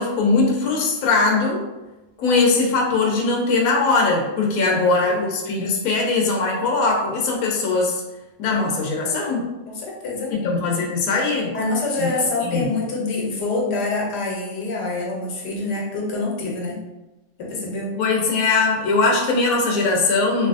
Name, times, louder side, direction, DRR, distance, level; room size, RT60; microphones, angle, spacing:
voice 1, 0.0-1.6 2.2-8.0 8.4-9.5 10.4-11.5 12.0-12.1 12.4-12.7 17.9-20.5, left 3 dB, 70° left, -1 dB, 1.0 m, -20 dB
voice 2, 4.7-5.2 9.7-10.4 11.5-16.8 17.4-18.0, left 3 dB, 85° left, -2 dB, 1.3 m, -26 dB
3.3 x 2.7 x 2.4 m, 1.0 s
omnidirectional pair, 1.7 m